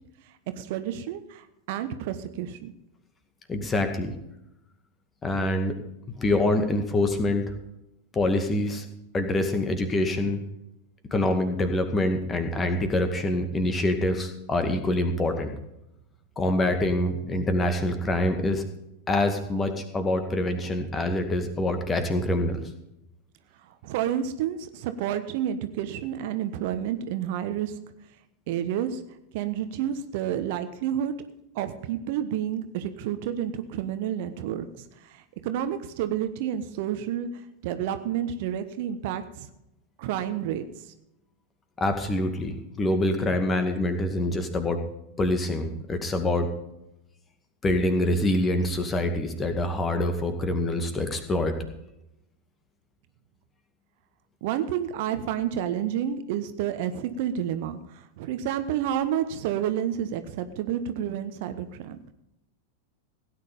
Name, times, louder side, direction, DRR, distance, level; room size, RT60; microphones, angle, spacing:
voice 1, 0.6-2.7 23.8-27.7 28.5-29.0 29.3-31.1 31.5-34.7 35.0-39.5 40.0-40.6 54.4-62.1, right 10 dB, 50° right, 10 dB, 1.1 m, -30 dB
voice 2, 3.5-4.1 5.2-5.8 6.2-7.5 8.1-8.9 9.1-10.4 11.1-15.5 16.4-18.6 19.1-22.6 41.8-44.8 45.2-46.5 47.6-51.6, left 1 dB, 20° left, 7 dB, 2.1 m, -25 dB
17.0 x 9.7 x 5.4 m, 0.86 s
figure-of-eight pair, 90°, 0 cm